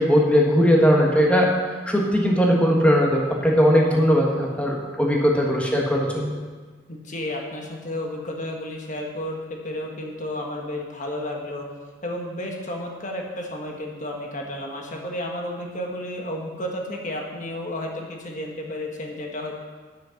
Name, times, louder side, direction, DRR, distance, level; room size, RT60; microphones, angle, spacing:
voice 1, 0.0-1.5 1.9-6.3, equal, 5° left, -1 dB, 1.4 m, -19 dB
voice 2, 6.9-11.7 12.0-19.6, left 1 dB, 40° left, 0 dB, 1.4 m, -32 dB
10.0 x 6.4 x 5.8 m, 1.5 s
head